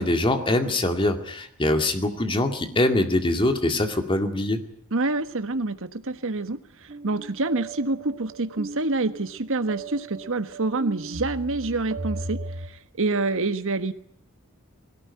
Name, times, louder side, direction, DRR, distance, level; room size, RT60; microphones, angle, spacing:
voice 1, 0.0-4.6, left 1 dB, 25° left, 6 dB, 2.2 m, -23 dB
voice 2, 4.9-12.4 12.7-13.9, right 3 dB, 65° right, 10 dB, 1.4 m, -27 dB
sound 1, 6.9-12.7, right 2 dB, 50° right, 1.6 m, -37 dB
20.5 x 17.5 x 9.7 m, 0.69 s
head